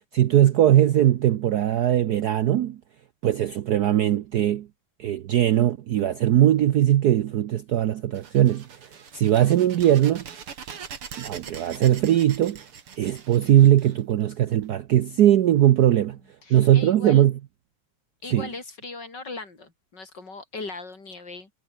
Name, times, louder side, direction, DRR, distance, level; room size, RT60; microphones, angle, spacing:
voice 1, 0.1-2.8 3.2-4.7 5.0-8.7 9.1-10.3 11.2-12.6 13.0-16.2 16.5-17.4 18.3-18.5, right 12 dB, 65° right, 1.0 m, -20 dB
sound 1, 8.1-14.7, right 7 dB, 90° right, 3.2 m, -42 dB
voice 2, 16.4-17.2 18.2-21.5, left 3 dB, 50° left, 4.8 m, -38 dB
omnidirectional pair, 2.3 m